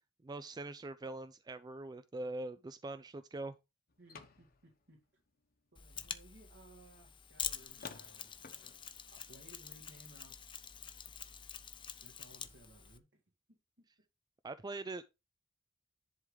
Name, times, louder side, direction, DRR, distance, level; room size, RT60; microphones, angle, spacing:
voice 1, 0.2-3.6 14.4-15.0, right 2 dB, 20° right, 0.4 m, -43 dB
sound 1, 3.9-5.5 6.2-6.3 6.9-7.0 7.7-9.3, left 4 dB, 50° left, 1.2 m, -53 dB
voice 2, 4.0-5.0 5.7-8.8 9.1-10.4 12.0-13.2 13.5-13.8, right 1 dB, 65° right, 2.1 m, -61 dB
Mechanisms, 5.8-13.0, left 7 dB, 25° left, 0.8 m, -46 dB
10.5 x 3.7 x 4.9 m
head